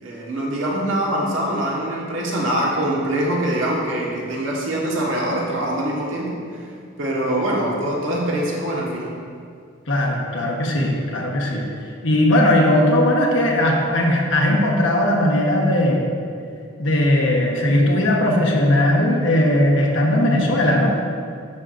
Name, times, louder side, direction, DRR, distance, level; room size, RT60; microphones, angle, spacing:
voice 1, 0.0-6.7 7.0-9.1, right 1 dB, 75° right, -3 dB, 1.4 m, -24 dB
voice 2, 9.9-11.6 12.0-16.0 16.8-20.9, left 1 dB, 65° left, -1 dB, 1.1 m, -18 dB
10.0 x 6.3 x 2.6 m, 2.3 s
head